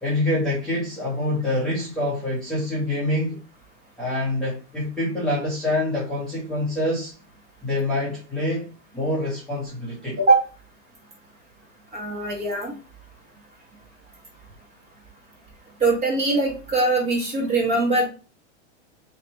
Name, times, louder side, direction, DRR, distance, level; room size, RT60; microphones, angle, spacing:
voice 1, 0.0-3.4 4.0-7.1 7.6-10.2, left 1 dB, ahead, 0.9 m, -26 dB
voice 2, 11.9-12.8 15.8-18.1, right 3 dB, 20° right, 1.2 m, -21 dB
4.0 x 3.0 x 3.1 m
supercardioid pair, 160°, 36 cm